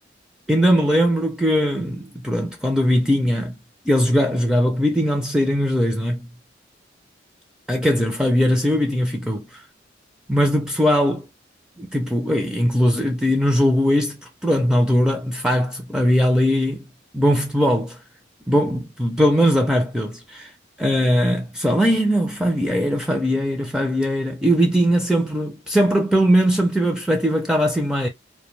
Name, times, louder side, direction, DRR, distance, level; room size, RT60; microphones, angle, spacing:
voice 1, 0.5-3.5 3.9-6.2 7.7-9.6 10.3-11.3 11.8-16.9 17.1-18.0 18.5-20.5 20.8-28.1, equal, 5° right, 0.4 m, -20 dB
2.2 x 2.2 x 3.1 m
head